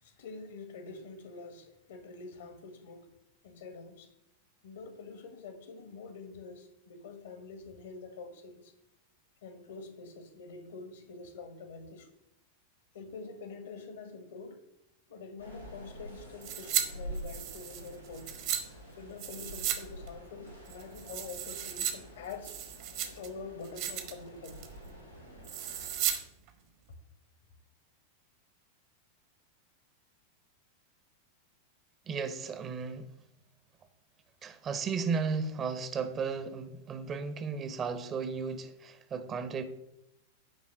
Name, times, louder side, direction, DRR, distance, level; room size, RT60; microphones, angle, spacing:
voice 1, 0.0-3.1 3.4-4.1 4.6-8.7 9.4-12.1 12.9-14.6 15.1-18.3 18.9-22.5 23.1-24.6, left 4 dB, 60° left, 1.6 m, -46 dB
sound 1, 15.4-26.1, equal, 90° left, 3.4 m, -48 dB
sound 2, 16.4-16.8 17.1-18.6 19.2-19.8 20.1-20.2 20.7-21.9 22.3-23.3 23.6-24.1 24.4-24.8 25.4-26.2 26.5-26.6, right 10 dB, 45° right, 1.3 m, -35 dB
voice 2, 32.1-33.1 34.4-39.6, right 5 dB, 25° right, 1.0 m, -34 dB
10.5 x 3.9 x 7.6 m
figure-of-eight pair, 90°, 0 cm